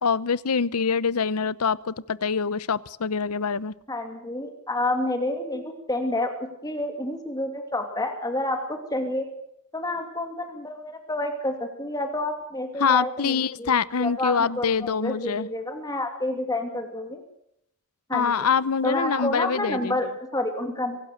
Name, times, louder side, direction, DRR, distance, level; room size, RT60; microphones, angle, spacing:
voice 1, 0.0-3.7 12.8-15.5 18.1-20.0, left 6 dB, 90° left, 19 dB, 0.8 m, -25 dB
voice 2, 3.9-6.3 6.6-9.3 9.7-17.2 18.1-18.5 18.8-21.0, left 1 dB, 15° left, 5 dB, 2.7 m, -29 dB
24.0 x 18.5 x 6.6 m, 0.76 s
head